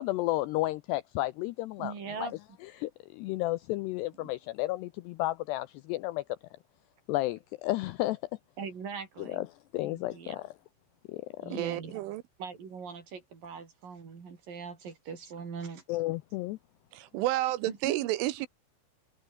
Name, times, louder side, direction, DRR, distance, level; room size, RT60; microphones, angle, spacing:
voice 1, 0.0-1.9 2.2-2.3 2.8-6.2 7.1-8.2 9.2-9.5 9.7-10.5 11.1-11.6 15.9-16.6, left 18 dB, 85° left, 2.4 m, -32 dB
voice 2, 1.8-2.4 4.2-4.3 8.6-9.5 9.8-10.4 11.4-12.0 12.4-15.8 17.7-18.0, right 5 dB, 45° right, 5.9 m, -41 dB
voice 3, 11.5-12.2 16.9-18.5, right 16 dB, 90° right, 3.7 m, -30 dB
omnidirectional pair, 5.5 m